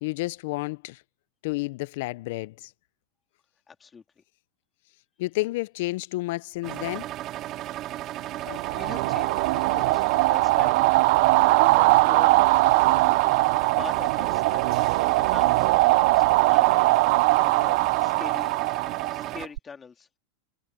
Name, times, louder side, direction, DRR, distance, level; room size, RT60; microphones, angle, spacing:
voice 1, 0.0-1.0 1.4-2.7 5.2-7.1, left 21 dB, 65° left, 0.5 m, -30 dB
voice 2, 3.7-4.2 8.4-10.8 11.4-12.4 13.6-14.8 15.3-17.0 17.4-18.6 19.1-20.1, left 5 dB, 20° left, 3.0 m, -43 dB
sound 1, 6.6-19.5, right 14 dB, 40° right, 2.2 m, -35 dB
sound 2, 8.5-19.6, right 22 dB, 65° right, 0.4 m, -21 dB
supercardioid pair, 125°, 0 cm